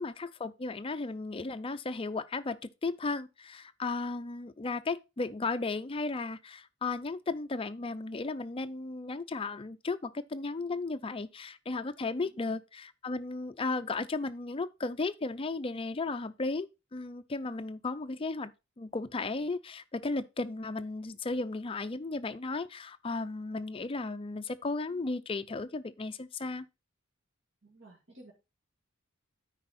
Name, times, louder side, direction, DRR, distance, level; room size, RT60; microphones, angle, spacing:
voice 1, 0.0-18.5 18.8-26.6, left 3 dB, 25° left, 0.5 m, -35 dB
voice 2, 12.2-12.6 18.1-18.2 27.6-28.3, right 1 dB, 60° right, 2.1 m, -55 dB
9.1 x 4.8 x 4.1 m
head